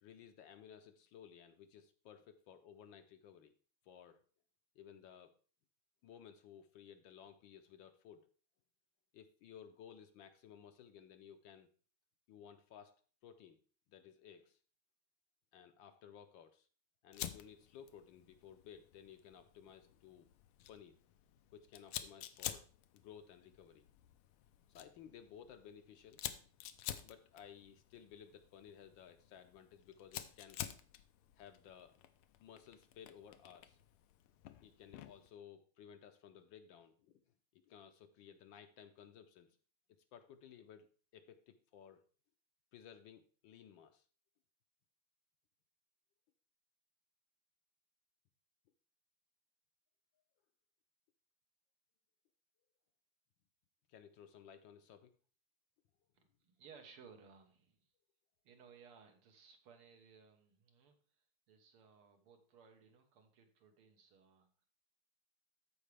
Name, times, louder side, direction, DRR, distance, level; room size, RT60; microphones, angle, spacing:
voice 1, 0.0-3.5 3.9-4.2 4.8-5.4 6.0-8.3 9.1-11.7 12.3-12.9 13.2-13.6 13.9-14.6 15.5-16.7 17.0-20.3 20.7-21.0 21.5-22.7 22.9-23.8 24.7-26.2 27.0-30.6 31.4-32.0 32.4-33.8 34.6-37.2 37.7-39.6 40.1-40.9 41.1-42.0 42.7-44.0 53.9-55.1, left 8 dB, 70° left, 8 dB, 1.2 m, -57 dB
Fire, 17.1-35.3, left 12 dB, 85° left, 1.5 m, -50 dB
voice 2, 56.1-57.9 58.4-61.0 61.5-64.6, right 6 dB, 85° right, 5 dB, 2.1 m, -61 dB
14.0 x 4.8 x 3.3 m, 0.40 s
omnidirectional pair, 2.4 m